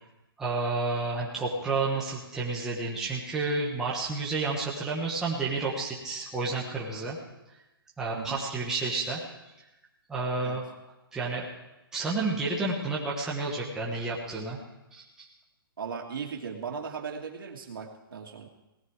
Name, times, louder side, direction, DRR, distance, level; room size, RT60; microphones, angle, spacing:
voice 1, 0.4-7.2 8.0-9.2 10.1-10.7 11.1-11.5 11.9-14.6 14.9-15.3, right 3 dB, 5° right, -5 dB, 1.2 m, -30 dB
voice 2, 8.1-8.5 10.4-10.6 15.8-18.5, right 6 dB, 60° right, 2 dB, 2.5 m, -37 dB
18.0 x 13.5 x 4.8 m, 0.97 s
hypercardioid pair, 175°, 13 cm